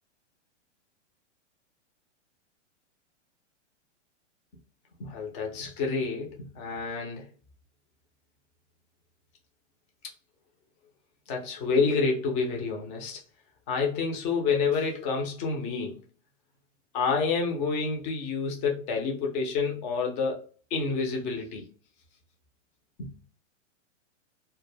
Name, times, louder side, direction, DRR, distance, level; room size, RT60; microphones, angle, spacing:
voice 1, 5.0-7.3 11.3-13.2 13.7-16.0 16.9-20.4 20.7-21.6, left 4 dB, 20° left, 0.4 m, -28 dB
2.2 x 2.0 x 3.1 m
hypercardioid pair, 145°, 36 cm